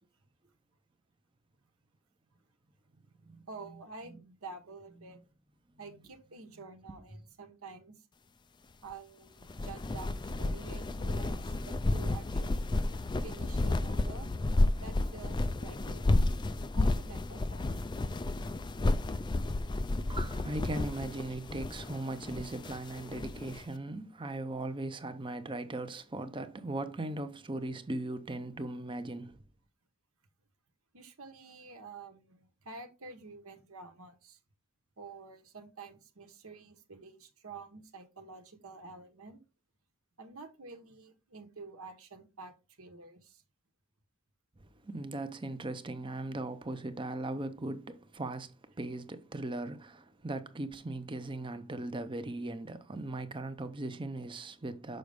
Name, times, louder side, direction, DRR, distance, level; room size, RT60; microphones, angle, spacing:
voice 1, 3.5-5.2 5.8-8.1 8.8-12.7 13.2-14.3 14.7-16.1 16.7-17.7 30.9-34.4 35.0-39.4 40.2-43.4, right 4 dB, 75° right, 1.2 m, -49 dB
sound 1, 9.4-23.6, left 2 dB, 20° left, 0.3 m, -31 dB
voice 2, 19.2-29.4 44.6-55.0, right 2 dB, 25° right, 0.6 m, -39 dB
6.4 x 5.2 x 3.4 m
head